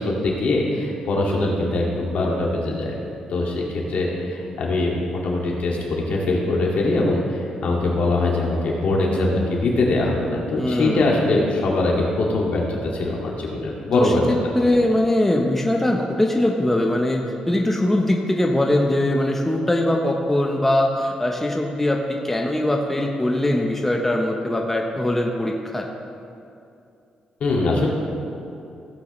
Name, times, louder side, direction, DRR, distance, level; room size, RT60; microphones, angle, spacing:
voice 1, 0.0-3.0 3.3-14.2 14.5-14.6 27.4-27.9, left 2 dB, 65° left, -2 dB, 2.2 m, -22 dB
voice 2, 10.6-11.2 13.9-14.1 14.5-25.9, left 1 dB, 10° left, 1 dB, 1.0 m, -21 dB
16.0 x 8.4 x 3.3 m, 2.6 s
cardioid pair, 85°, 2 cm